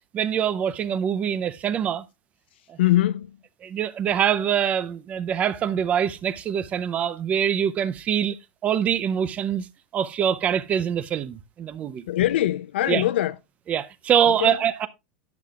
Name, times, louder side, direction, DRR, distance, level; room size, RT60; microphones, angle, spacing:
voice 1, 0.1-2.0 2.7-2.8 3.6-8.4 8.6-9.7 9.9-12.0 12.9-13.0 13.7-14.9, right 8 dB, 25° right, 0.6 m, -24 dB
voice 2, 2.8-3.4 12.1-13.3 14.3-14.6, left 14 dB, 85° left, 0.5 m, -22 dB
10.5 x 9.5 x 2.4 m
supercardioid pair, 150°, 6 cm